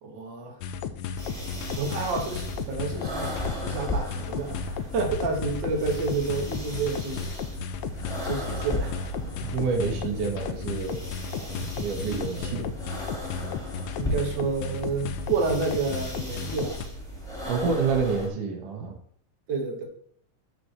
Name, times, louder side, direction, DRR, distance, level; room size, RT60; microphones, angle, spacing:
voice 1, 0.0-0.6 1.8-7.3 8.2-9.1 12.2-12.8 14.0-16.8 19.5-19.8, right 4 dB, 45° right, 1 dB, 1.9 m, -30 dB
sound 1, 0.6-16.9, left 7 dB, 75° left, 1.8 m, -34 dB
sound 2, 1.2-18.3, equal, ahead, 2.3 m, -36 dB
voice 2, 9.2-11.0 11.4-12.8 17.5-19.0, right 5 dB, 75° right, 3 dB, 2.9 m, -28 dB
11.5 x 4.7 x 4.4 m, 0.63 s
omnidirectional pair, 3.7 m